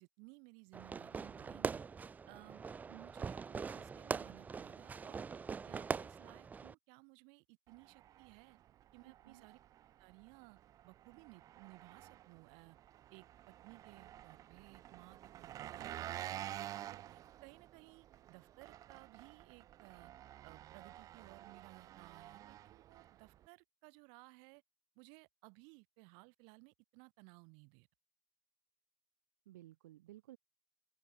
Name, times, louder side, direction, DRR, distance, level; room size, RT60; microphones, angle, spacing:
voice 1, 0.0-1.8 2.3-5.2 5.6-8.6 8.9-9.6 10.0-10.6 10.8-12.8 13.1-20.1 20.4-24.6 24.9-27.9, right 36 dB, 60° right, 6.4 m, -60 dB
Fireworks, 0.7-6.7, right 5 dB, 20° right, 0.7 m, -42 dB
Engine, 7.7-23.5, right 12 dB, 40° right, 4.4 m, -51 dB
voice 2, 9.0-9.5 29.5-30.4, right 15 dB, 85° right, 3.8 m, -57 dB
open air
supercardioid pair, 115°, 9 cm